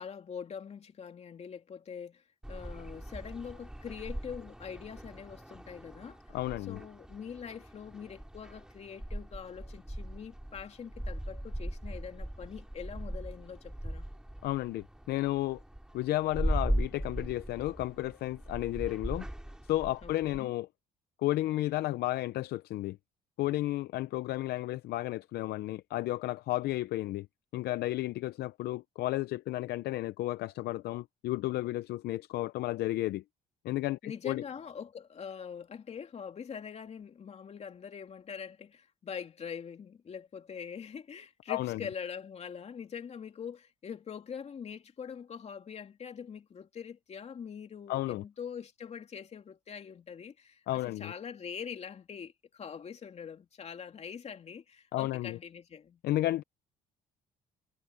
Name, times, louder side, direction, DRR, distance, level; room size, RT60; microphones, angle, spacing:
voice 1, 0.0-2.2 2.5-6.2 6.7-14.1 20.0-20.5 34.0-56.0, left 7 dB, 40° left, 2.8 m, -43 dB
sound 1, 2.4-20.4, right 1 dB, 5° right, 6.5 m, -39 dB
voice 2, 6.3-6.8 14.4-15.6 15.9-19.3 19.7-20.7 21.2-23.0 23.4-27.3 27.5-33.2 33.6-34.4 41.5-41.8 47.9-48.2 50.7-51.1 54.9-55.4 56.0-56.4, left 16 dB, 70° left, 0.5 m, -32 dB
cardioid pair, 110°, 17 cm